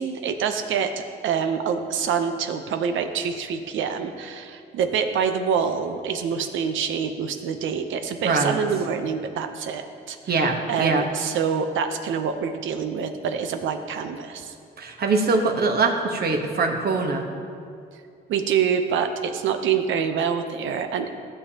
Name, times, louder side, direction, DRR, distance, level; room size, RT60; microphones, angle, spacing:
voice 1, 0.0-14.6 18.3-21.1, right 7 dB, 75° right, 7 dB, 0.8 m, -26 dB
voice 2, 8.2-8.6 10.3-11.0 14.8-17.2, right 3 dB, 50° right, 3 dB, 1.2 m, -22 dB
15.0 x 6.9 x 2.9 m, 2.4 s
cardioid pair, 90°, 20 cm